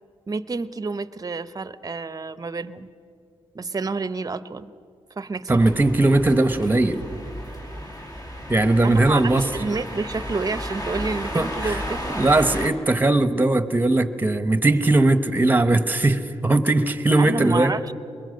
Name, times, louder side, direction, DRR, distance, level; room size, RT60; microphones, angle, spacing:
voice 1, 0.3-2.9 3.5-4.7 5.2-5.7 8.8-12.2 17.2-17.9, right 3 dB, 35° right, 14 dB, 0.8 m, -29 dB
voice 2, 5.5-7.0 8.5-9.5 11.3-11.8 12.2-17.7, right 2 dB, 15° right, 12 dB, 1.1 m, -19 dB
sound 1, 5.6-12.7, equal, 35° left, 2.6 m, -33 dB
23.5 x 21.5 x 6.7 m, 2.5 s
cardioid pair, 85°, 11 cm